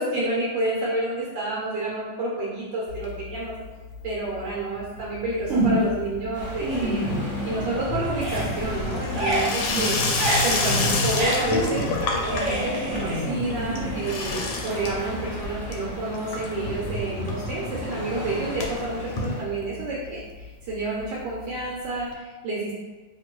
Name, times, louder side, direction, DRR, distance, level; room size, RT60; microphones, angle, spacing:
voice 1, 0.0-3.5 4.0-7.0 7.4-10.0 10.4-11.9 12.3-22.7, right 2 dB, 75° right, -5 dB, 1.2 m, -29 dB
Water tap faucet / Sink (filling or washing), 2.9-3.7 3.9-4.5 4.8-20.1 20.4-20.5 20.7-20.8 21.0-21.1 22.1-22.2, left 2 dB, 75° left, 1.2 m, -30 dB
sound 1, 5.5-6.0 6.4-7.8 8.1-14.6, right 1 dB, 55° right, 1.0 m, -28 dB
sound 2, 6.3-19.4, left 1 dB, 60° left, 0.5 m, -38 dB
2.8 x 2.6 x 2.9 m, 1.3 s
omnidirectional pair, 2.0 m